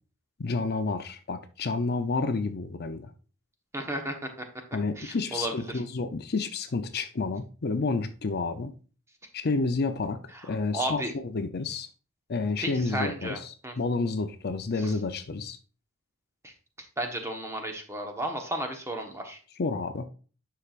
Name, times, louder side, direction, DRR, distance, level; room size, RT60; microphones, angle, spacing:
voice 1, 0.4-3.1 4.7-8.7 9.3-10.2 10.4-11.9 12.3-15.6 19.6-20.1, left 3 dB, 50° left, 0.6 m, -30 dB
voice 2, 3.7-4.1 5.0-5.7 10.7-11.1 12.6-13.7 17.0-19.4, right 1 dB, 15° right, 1.2 m, -33 dB
9.9 x 5.8 x 2.5 m
head